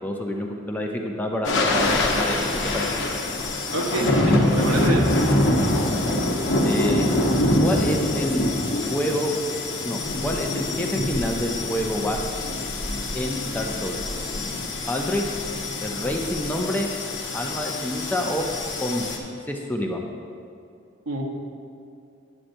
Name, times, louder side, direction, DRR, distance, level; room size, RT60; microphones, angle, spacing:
voice 1, 0.0-2.4 2.7-2.9 6.6-7.0 7.6-8.5 8.9-9.3 9.8-12.4 13.1-14.0 14.9-15.4 15.8-16.9 17.3-18.5 18.8-19.0 19.5-20.0, left 1 dB, 10° left, 1 dB, 0.5 m, -27 dB
sound 1, 1.4-19.2, left 1 dB, 60° left, 0.9 m, -25 dB
voice 2, 3.7-5.1 21.1-21.2, right 1 dB, 90° right, 0 dB, 1.0 m, -26 dB
9.8 x 7.5 x 2.6 m, 2.5 s
head